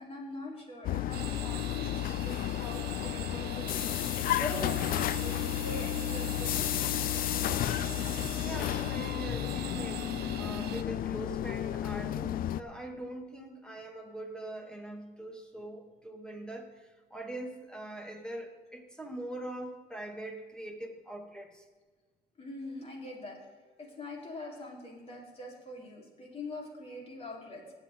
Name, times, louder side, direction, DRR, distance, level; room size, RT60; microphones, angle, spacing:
voice 1, 0.0-3.8 4.4-6.9 22.4-23.4 23.8-27.7, left 2 dB, 35° left, -1 dB, 4.1 m, -43 dB
sound 1, 0.8-12.6, left 12 dB, 60° left, 0.4 m, -32 dB
sound 2, 1.1-10.8, right 12 dB, 70° right, 0.7 m, -44 dB
voice 2, 8.4-21.6, right 1 dB, 5° left, 3 dB, 2.2 m, -42 dB
19.0 x 7.9 x 3.9 m, 1.4 s
cardioid pair, 110°, 17 cm